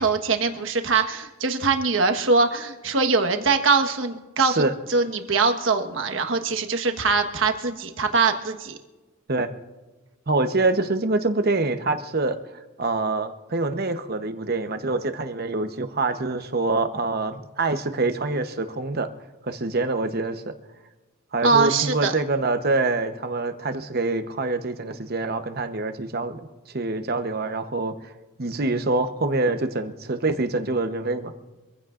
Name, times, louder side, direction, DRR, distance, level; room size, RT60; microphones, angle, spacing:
voice 1, 0.0-4.6 4.9-8.8 21.4-22.1, right 4 dB, 65° right, 6 dB, 1.4 m, -22 dB
voice 2, 4.4-4.7 9.3-9.5 10.3-12.4 12.8-19.1 19.4-20.5 21.3-26.5 26.7-27.9 28.4-31.3, right 3 dB, 50° right, 8 dB, 1.0 m, -25 dB
25.0 x 15.5 x 2.5 m, 1.2 s
head